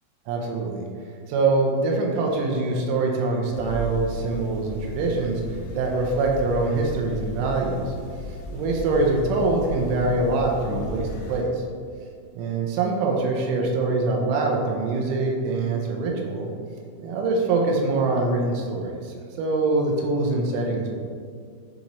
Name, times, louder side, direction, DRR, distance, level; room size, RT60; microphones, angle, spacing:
voice 1, 0.3-0.8 1.3-7.9 8.5-11.6 12.4-16.5 17.0-20.9, right 3 dB, 80° right, 1 dB, 3.1 m, -24 dB
sound 1, 3.5-11.4, left 1 dB, 80° left, 3.7 m, -35 dB
10.0 x 3.9 x 3.1 m, 2.2 s
omnidirectional pair, 5.8 m